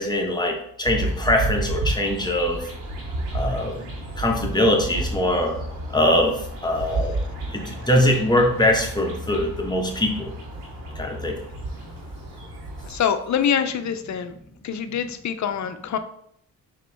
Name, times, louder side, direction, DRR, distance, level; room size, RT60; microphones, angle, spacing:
voice 1, 0.0-2.6 3.3-3.7 4.2-5.5 5.9-6.3 6.6-7.2 7.5-10.3 11.0-11.4, left 1 dB, 10° left, 1 dB, 1.2 m, -22 dB
sound 1, 0.8-13.0, right 2 dB, 80° right, 1.9 m, -31 dB
voice 2, 12.8-14.3 14.6-16.0, left 8 dB, 45° left, 10 dB, 0.6 m, -25 dB
4.8 x 3.1 x 3.4 m, 0.71 s
supercardioid pair, 50°, 39 cm